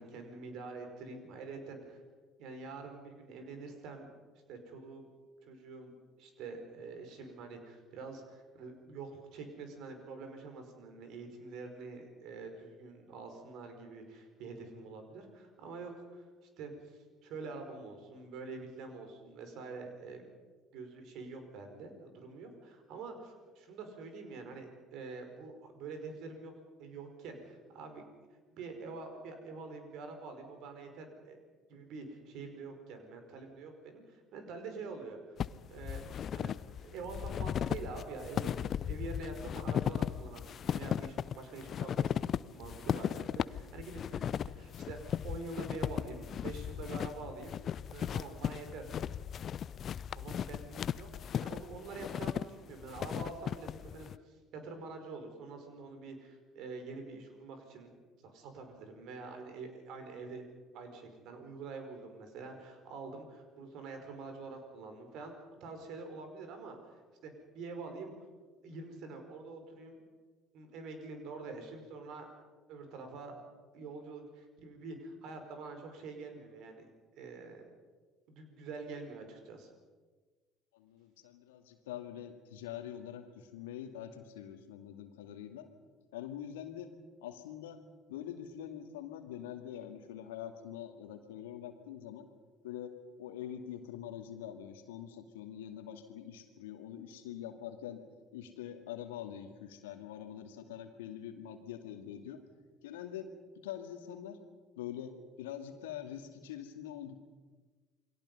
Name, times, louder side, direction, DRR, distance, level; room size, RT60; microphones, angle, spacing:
voice 1, 0.0-2.0 2.4-4.1 4.5-5.1 5.4-5.9 6.2-20.3 20.7-26.5 26.8-28.0 28.5-31.4 31.7-35.4 35.7-36.1 36.3-36.5 36.8-47.6 47.9-48.9 50.1-57.9 58.2-60.4 60.7-65.3 65.6-68.1 68.6-70.0 70.5-72.3 72.7-73.4 73.7-76.8 77.1-77.7 78.3-79.7, right 3 dB, 60° right, 5 dB, 5.1 m, -46 dB
sound 1, 35.4-54.2, left 9 dB, 45° left, 0.6 m, -36 dB
voice 2, 80.7-85.7 86.1-86.9 87.2-87.8 88.1-92.3 92.6-92.9 93.2-98.0 98.3-102.4 102.8-103.3 103.6-104.4 104.8-105.1 105.4-107.2, left 10 dB, 75° left, 6 dB, 2.3 m, -44 dB
28.5 x 23.0 x 5.6 m, 1.4 s
figure-of-eight pair, 55°, 0 cm